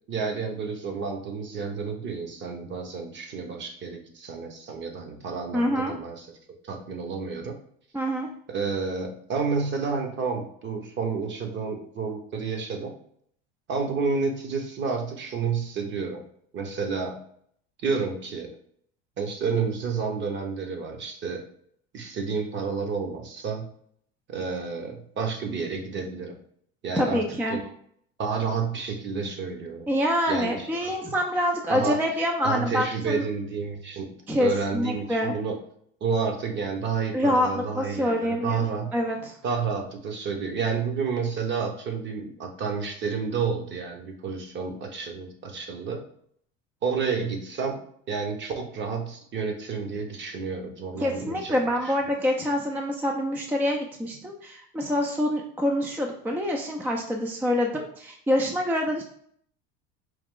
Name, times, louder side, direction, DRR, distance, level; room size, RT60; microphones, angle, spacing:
voice 1, 0.1-6.3 6.6-7.6 8.5-12.9 13.7-16.2 16.5-17.2 17.8-18.5 19.2-21.4 21.9-23.7 24.3-26.4 26.8-27.2 27.5-27.7 28.2-29.9 30.3-30.9 31.7-32.0 32.4-34.1 34.4-35.6 36.0-38.9 39.4-46.0 46.8-47.8 48.1-51.9, right 5 dB, 40° right, 4 dB, 0.9 m, -30 dB
voice 2, 5.5-6.0 7.9-8.3 27.0-27.6 29.9-33.2 34.3-35.3 37.1-38.6 38.9-39.4 51.0-59.0, left 1 dB, 5° right, 2 dB, 0.4 m, -26 dB
4.6 x 2.3 x 3.7 m, 0.65 s
supercardioid pair, 110°, 29 cm